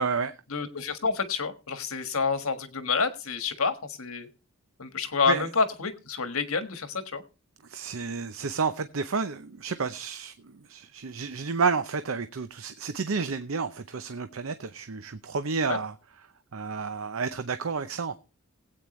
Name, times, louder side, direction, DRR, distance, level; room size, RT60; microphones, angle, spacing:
voice 1, 0.0-0.3 5.3-5.5 7.6-15.9 16.5-18.2, right 5 dB, 70° right, 0.7 m, -30 dB
voice 2, 0.5-4.3 4.8-7.2 15.7-15.8, left 5 dB, 75° left, 1.5 m, -28 dB
20.0 x 8.7 x 3.1 m
head